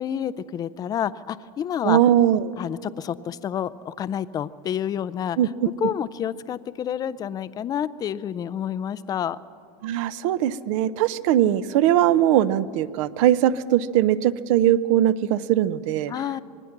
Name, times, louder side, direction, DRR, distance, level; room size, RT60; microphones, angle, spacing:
voice 1, 0.0-2.0 2.6-5.4 5.8-9.4 16.1-16.4, left 9 dB, 20° left, 17 dB, 0.4 m, -29 dB
voice 2, 1.8-2.4 5.4-5.7 9.8-16.1, right 11 dB, 60° right, 16 dB, 0.7 m, -20 dB
25.5 x 20.0 x 6.0 m, 2.4 s
supercardioid pair, 150°, 19 cm